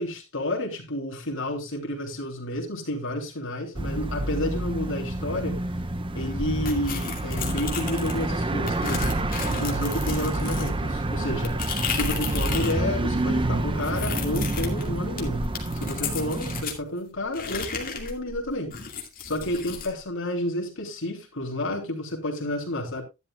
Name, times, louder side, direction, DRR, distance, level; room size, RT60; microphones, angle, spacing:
voice 1, 0.0-5.6 6.1-11.6 11.9-15.5 15.7-18.8 19.2-23.0, left 1 dB, 60° left, 3.4 m, -30 dB
sound 1, 3.7-16.6, right 2 dB, 25° right, 0.7 m, -28 dB
sound 2, 6.7-8.3 8.7-12.8 13.1-16.8 17.3-19.9, left 5 dB, 40° left, 2.4 m, -34 dB
12.0 x 11.0 x 2.5 m
head